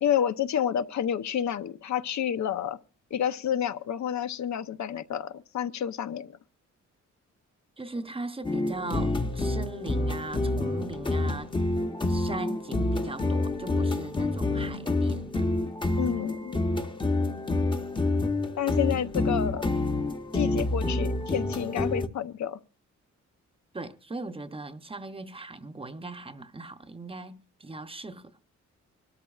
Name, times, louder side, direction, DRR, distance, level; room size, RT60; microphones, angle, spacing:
voice 1, 0.0-2.8 3.1-6.4 16.0-16.6 18.6-19.7 20.3-22.6, left 9 dB, 70° left, 0.7 m, -29 dB
voice 2, 7.8-11.5 12.1-15.5 23.7-28.3, right 2 dB, 20° right, 0.7 m, -39 dB
sound 1, 8.4-22.1, left 2 dB, 15° left, 0.8 m, -28 dB
24.5 x 13.0 x 2.4 m
wide cardioid pair, 145°, 29 cm